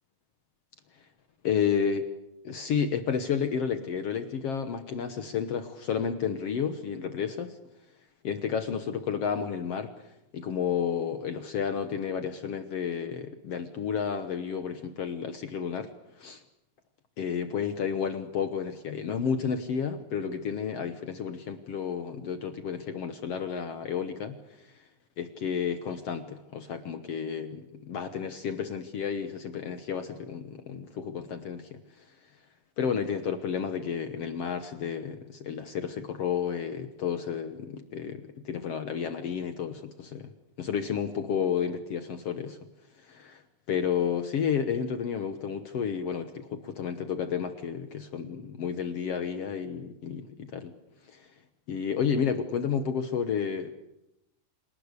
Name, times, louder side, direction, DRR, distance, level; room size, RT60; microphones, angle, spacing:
voice 1, 1.4-2.0 2.4-7.6 8.2-9.9 10.3-15.9 16.2-16.4 17.2-24.7 25.2-31.8 32.8-40.3 40.6-42.6 43.0-43.4 43.7-50.7 51.1-51.2 51.7-53.7, left 7 dB, 60° left, 9 dB, 1.8 m, -31 dB
27.5 x 19.0 x 8.2 m, 0.86 s
omnidirectional pair, 3.9 m